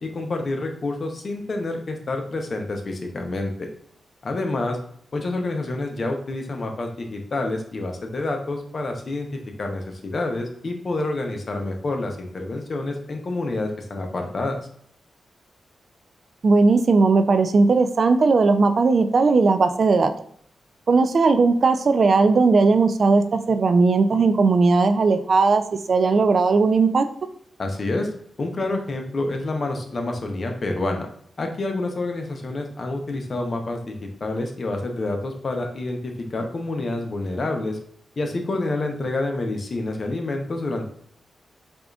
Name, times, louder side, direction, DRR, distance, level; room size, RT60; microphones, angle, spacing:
voice 1, 0.0-3.7 4.2-4.8 5.1-14.6 27.6-28.1 28.4-31.1 31.4-37.8 38.2-40.9, left 2 dB, 50° left, 3 dB, 0.7 m, -28 dB
voice 2, 16.4-20.1 20.9-25.6 25.9-27.1, right 4 dB, 60° right, 9 dB, 0.3 m, -17 dB
4.8 x 2.5 x 2.3 m, 0.64 s
supercardioid pair, 45°, 0 cm